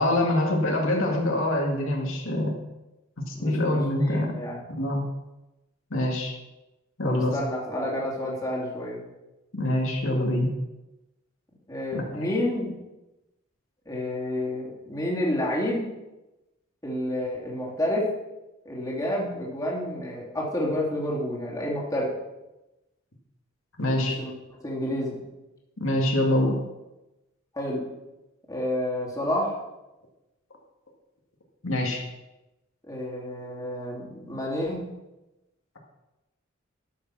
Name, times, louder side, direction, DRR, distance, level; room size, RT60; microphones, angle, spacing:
voice 1, 0.0-2.5 3.2-4.3 4.8-5.1 5.9-6.3 7.0-7.4 9.5-10.5 11.9-12.3 23.8-24.2 25.8-26.6 31.6-32.0, left 1 dB, 70° left, 0 dB, 2.1 m, -25 dB
voice 2, 3.3-4.6 7.0-9.0 11.7-12.7 13.9-15.9 16.8-18.1 18.6-22.1 23.9-24.3 24.6-25.2 27.5-27.8 28.5-29.6 32.9-34.9, left 1 dB, 15° left, -4 dB, 2.8 m, -29 dB
12.0 x 6.6 x 6.1 m, 0.99 s
head